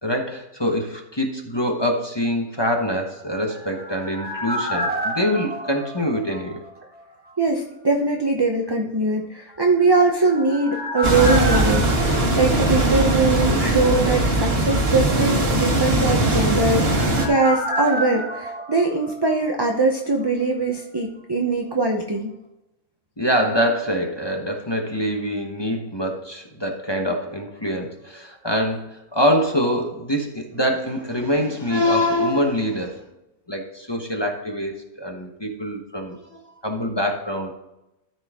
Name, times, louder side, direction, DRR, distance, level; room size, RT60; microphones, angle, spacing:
voice 1, 0.0-6.6 23.2-33.0 33.5-37.5, equal, 20° left, 1 dB, 1.0 m, -24 dB
sound 1, 3.2-7.0 7.3-7.4 9.8-13.5 13.8-13.9 16.1-20.0 20.2-20.3, right 1 dB, 5° right, 1.5 m, -30 dB
voice 2, 7.4-22.3, right 3 dB, 25° right, 2 dB, 0.6 m, -21 dB
sound 2, 11.0-17.3, right 2 dB, 40° right, 1.6 m, -20 dB
13.5 x 5.3 x 3.6 m, 0.90 s
omnidirectional pair, 1.6 m